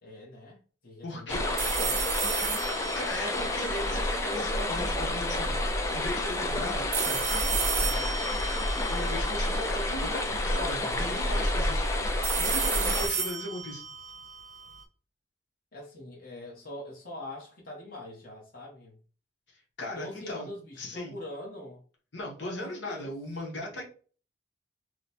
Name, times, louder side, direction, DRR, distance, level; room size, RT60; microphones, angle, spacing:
voice 1, 0.0-1.9 7.8-8.6 15.7-19.0 19.9-21.8 22.4-23.1, left 1 dB, 50° left, 1.0 m, -43 dB
voice 2, 1.0-1.4 2.9-5.6 5.9-7.3 8.9-11.9 12.4-13.8 19.8-20.5 20.8-21.2 22.1-23.8, left 1 dB, 75° left, 1.1 m, -37 dB
Mountainstream short clip, 1.3-13.1, left 1 dB, 15° left, 0.3 m, -29 dB
sound 1, 1.6-4.6 6.9-10.1 12.2-14.8, right 6 dB, 40° right, 0.7 m, -33 dB
3.0 x 2.1 x 4.0 m
head